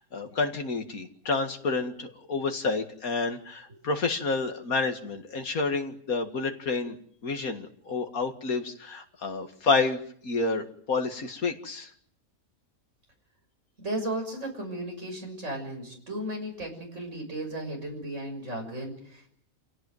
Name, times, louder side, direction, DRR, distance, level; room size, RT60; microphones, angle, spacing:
voice 1, 0.0-7.0 7.2-11.9, left 4 dB, 85° left, 5 dB, 2.5 m, -29 dB
voice 2, 13.8-19.3, right 1 dB, 55° right, 1 dB, 7.0 m, -35 dB
27.5 x 17.5 x 9.3 m, 0.63 s
omnidirectional pair, 1.5 m